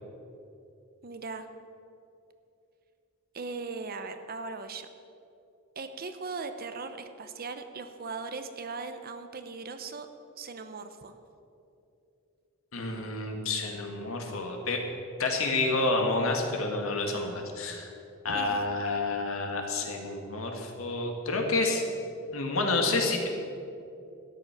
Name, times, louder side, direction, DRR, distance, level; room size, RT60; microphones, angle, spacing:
voice 1, 1.0-1.5 3.3-4.9 5.8-10.1 10.4-11.2 18.3-18.6, right 4 dB, 45° right, 9 dB, 0.8 m, -39 dB
voice 2, 12.7-14.8 15.2-17.9 18.2-21.8 22.3-23.3, left 2 dB, 80° left, 2 dB, 2.0 m, -29 dB
13.0 x 10.5 x 6.0 m, 2.7 s
head